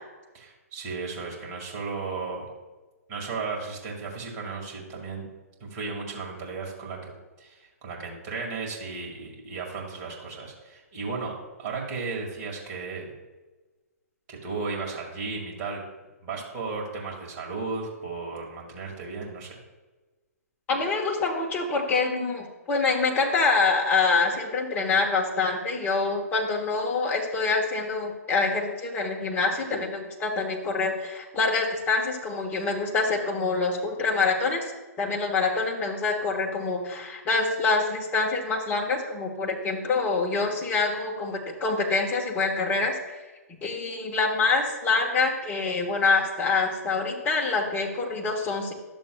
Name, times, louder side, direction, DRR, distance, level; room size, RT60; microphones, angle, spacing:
voice 1, 0.3-2.5 3.1-5.3 5.6-7.1 7.4-13.1 14.3-15.8 16.2-19.6, right 4 dB, 30° right, -2 dB, 2.1 m, -35 dB
voice 2, 20.7-34.7 35.0-43.0 43.6-48.7, left 4 dB, 20° left, 0 dB, 1.3 m, -26 dB
12.0 x 6.8 x 2.3 m, 1.2 s
hypercardioid pair, 135°, 9 cm